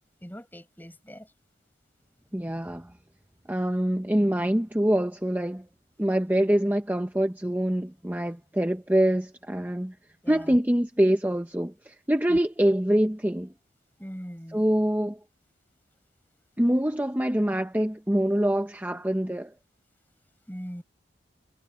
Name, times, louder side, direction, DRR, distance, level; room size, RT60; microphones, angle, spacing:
voice 1, 0.2-1.3 10.2-10.6 12.3-12.4 14.0-14.6 20.5-20.8, equal, 10° left, 5.3 m, -40 dB
voice 2, 2.3-2.9 3.5-5.7 6.0-10.0 10.3-13.5 14.5-15.2 16.6-19.5, right 1 dB, 10° right, 0.7 m, -25 dB
head